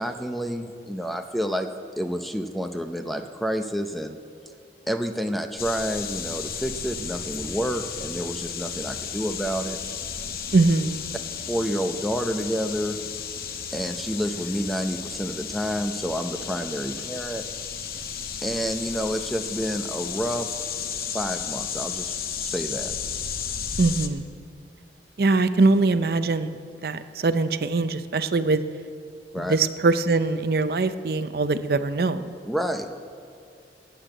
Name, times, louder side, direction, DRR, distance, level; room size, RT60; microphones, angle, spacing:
voice 1, 0.0-1.7 2.0-4.2 4.9-9.8 11.5-13.0 13.7-17.4 18.4-20.5 21.1-22.9 29.3-29.6 32.4-32.9, equal, ahead, 6 dB, 0.6 m, -29 dB
sound 1, 5.6-24.1, left 7 dB, 55° left, 0.8 m, -33 dB
voice 2, 10.5-11.0 23.8-24.3 25.2-26.6 26.8-28.6 29.4-32.3, right 3 dB, 55° right, 11 dB, 0.5 m, -22 dB
13.5 x 8.1 x 8.9 m, 2.6 s
head